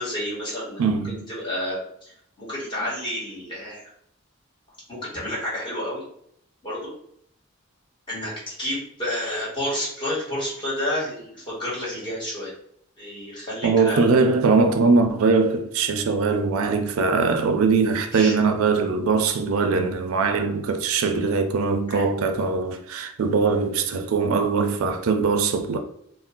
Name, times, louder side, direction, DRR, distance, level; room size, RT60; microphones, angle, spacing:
voice 1, 0.0-3.8 4.9-6.0 6.6-6.9 8.1-12.5 13.0-14.1 18.1-18.3 21.9-22.0, left 1 dB, 25° left, 1.4 m, -30 dB
voice 2, 0.8-1.3 13.6-25.8, right 4 dB, 85° right, 0.4 m, -21 dB
2.5 x 2.1 x 3.6 m
head